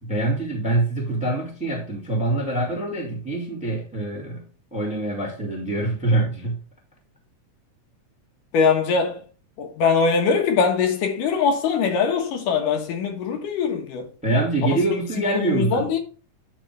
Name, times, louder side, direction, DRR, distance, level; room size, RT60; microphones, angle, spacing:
voice 1, 0.0-4.4 4.7-6.6 14.2-15.9, right 2 dB, 5° right, 1.1 m, -24 dB
voice 2, 8.5-9.2 9.6-14.1 15.2-16.0, left 5 dB, 85° left, 2.9 m, -22 dB
9.0 x 3.9 x 4.6 m
omnidirectional pair, 3.6 m